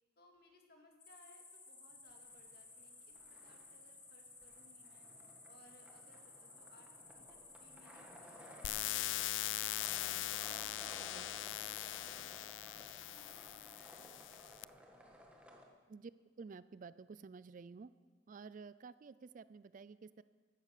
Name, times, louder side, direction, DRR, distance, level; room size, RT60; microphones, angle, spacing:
voice 1, 0.2-5.1 5.5-10.5 10.9-15.2 15.7-15.8, left 1 dB, 50° left, 2 dB, 2.3 m, -66 dB
sound 1, 1.0-10.6, left 3 dB, 25° left, 3.0 m, -57 dB
sound 2, 2.1-2.9 3.1-15.6, equal, 5° right, 1.6 m, -57 dB
sound 3, 8.6-14.6, left 15 dB, 65° left, 0.4 m, -41 dB
voice 2, 16.4-17.9 18.3-20.2, right 4 dB, 40° right, 16 dB, 0.3 m, -52 dB
15.5 x 12.5 x 6.6 m, 1.5 s
head